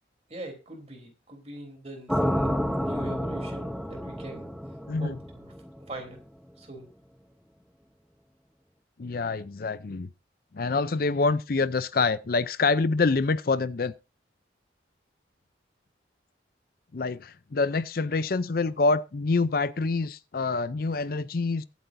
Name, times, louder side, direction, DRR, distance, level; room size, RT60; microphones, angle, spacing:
voice 1, 0.3-2.5 2.8-4.5 5.0-5.5 5.8-6.2 6.6-6.9, right 2 dB, 35° right, 3.5 m, -42 dB
sound 1, 2.1-6.2, equal, ahead, 0.7 m, -30 dB
voice 2, 9.0-10.1 10.5-13.9 16.9-21.6, left 3 dB, 55° left, 0.5 m, -26 dB
23.0 x 8.2 x 2.6 m
head